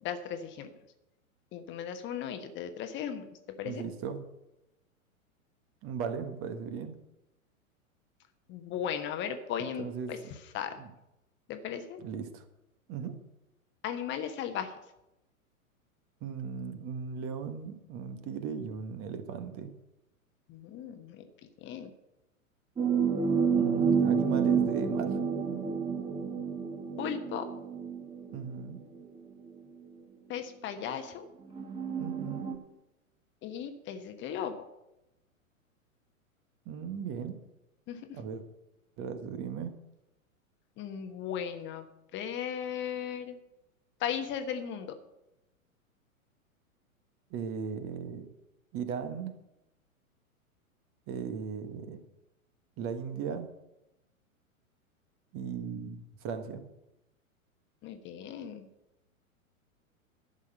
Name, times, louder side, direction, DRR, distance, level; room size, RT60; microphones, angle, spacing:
voice 1, 0.0-0.7 1.5-3.3 3.6-3.9 8.5-10.2 10.5-10.7 11.5-12.0 13.8-14.7 20.5-21.2 21.6-21.9 27.0-27.5 30.3-31.3 33.4-34.6 37.9-38.2 40.8-41.8 42.1-43.4 44.0-45.0 57.8-58.7, left 8 dB, 25° left, 8 dB, 1.2 m, -36 dB
voice 2, 3.6-4.2 5.8-7.0 9.6-10.1 10.8-10.9 12.0-12.4 12.9-13.2 16.2-19.7 23.5-25.1 28.3-28.8 31.9-32.5 36.6-37.4 38.1-38.4 39.0-39.8 47.3-48.3 48.7-49.3 51.1-52.0 52.8-53.5 55.3-56.6, right 6 dB, 30° right, 9 dB, 1.4 m, -37 dB
sound 1, 22.8-28.7 29.6-29.7 31.5-32.6, right 6 dB, 10° right, 1.5 m, -29 dB
12.0 x 6.4 x 8.8 m, 0.92 s
figure-of-eight pair, 100°, 42 cm